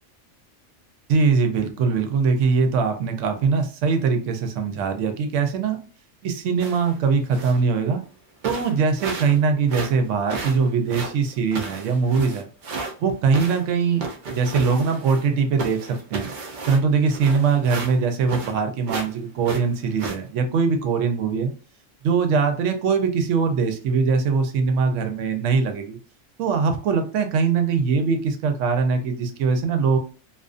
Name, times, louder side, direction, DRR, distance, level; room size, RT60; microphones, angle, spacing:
voice 1, 1.1-5.8 6.2-8.0 8.4-12.5 13.0-16.3 16.7-21.5 22.0-26.0 26.4-30.0, right 5 dB, 90° right, 6 dB, 0.9 m, -22 dB
sound 1, 6.6-7.0 7.3-7.7 8.1-8.2 8.4-9.4 9.7-12.9 13.3-15.3 15.6-18.6 18.9-19.1 19.4-20.2, right 3 dB, 60° right, 0.5 m, -33 dB
2.5 x 2.3 x 2.4 m, 0.37 s
omnidirectional pair, 1.2 m